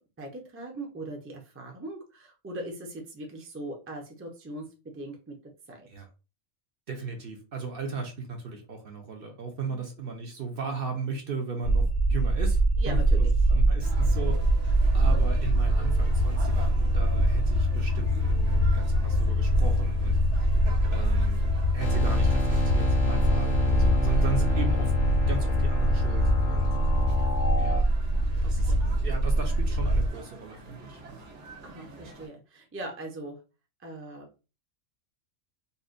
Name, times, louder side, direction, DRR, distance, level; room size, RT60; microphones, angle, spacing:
voice 1, 0.2-4.7 4.9-5.4 5.7-5.9 9.7-9.8 12.8-13.3 28.4-28.8 31.6-33.4 33.8-34.4, right 1 dB, 15° right, 1 dB, 0.5 m, -40 dB
voice 2, 6.9-20.2 20.9-21.4 21.7-24.9 25.3-26.8 27.0-27.2 27.6-27.9 28.4-31.2, right 4 dB, 55° right, 3 dB, 0.8 m, -36 dB
sound 1, 11.6-30.1, equal, 55° left, 0.5 m, -24 dB
sound 2, 13.8-32.3, right 3 dB, 70° right, 1.3 m, -46 dB
sound 3, 21.8-27.8, left 1 dB, 70° left, 1.5 m, -30 dB
4.1 x 2.1 x 2.5 m, 0.31 s
omnidirectional pair, 1.3 m